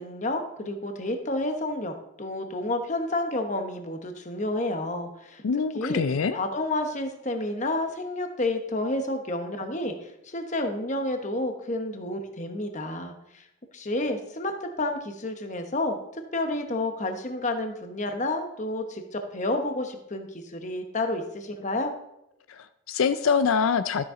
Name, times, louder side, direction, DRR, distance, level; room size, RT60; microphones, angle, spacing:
voice 1, 0.0-5.4 5.7-6.0 6.3-13.4 13.7-16.0 16.3-21.9, left 2 dB, 35° left, 5 dB, 1.0 m, -30 dB
voice 2, 5.4-6.4 22.5-24.1, left 6 dB, 85° left, 11 dB, 0.4 m, -25 dB
12.5 x 7.1 x 3.8 m, 0.84 s
head